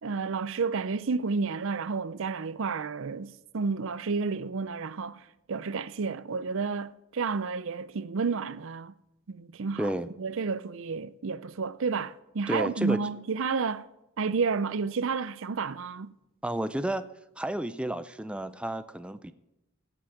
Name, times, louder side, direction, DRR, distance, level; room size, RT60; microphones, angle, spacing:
voice 1, 0.0-8.9 9.3-9.9 10.2-13.9 14.2-16.1, right 4 dB, 65° right, 0.5 m, -31 dB
voice 2, 9.8-10.1 12.5-13.0 16.4-17.1 17.4-19.3, right 1 dB, 5° right, 0.4 m, -31 dB
17.0 x 6.1 x 8.5 m
head